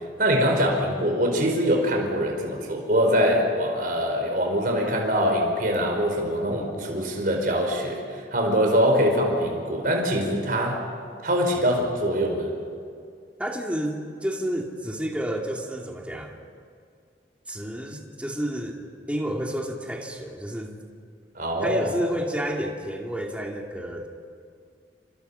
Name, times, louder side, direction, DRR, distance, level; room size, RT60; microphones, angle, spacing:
voice 1, 0.2-10.8 11.2-12.5 21.3-21.9, equal, 50° right, 1 dB, 5.1 m, -23 dB
voice 2, 6.5-7.1 13.4-16.4 17.5-20.7 21.6-24.1, equal, 5° right, 0 dB, 2.6 m, -30 dB
29.0 x 26.0 x 5.7 m, 2.2 s
head